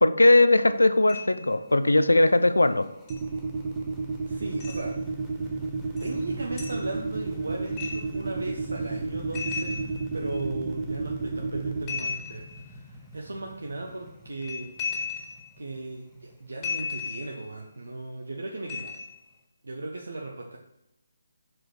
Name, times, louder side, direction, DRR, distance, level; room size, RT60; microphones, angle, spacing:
voice 1, 0.0-2.9, left 2 dB, 80° left, 12 dB, 0.5 m, -19 dB
sound 1, 0.8-19.3, left 1 dB, ahead, 0.8 m, -46 dB
sound 2, 1.1-1.5 3.1-3.2 4.6-4.8 6.0-6.1 6.6-6.8 7.8-8.2 9.3-10.4 11.9-12.7 14.3-15.5 16.6-17.5 18.7-19.2, left 5 dB, 20° left, 2.2 m, -35 dB
sound 3, 3.1-11.8, right 4 dB, 35° right, 0.5 m, -31 dB
voice 2, 4.3-4.9 6.0-14.7 15.6-18.9 19.6-20.6, right 2 dB, 70° right, 0 dB, 0.9 m, -37 dB
6.0 x 4.6 x 4.8 m, 0.88 s
figure-of-eight pair, 145°, 0 cm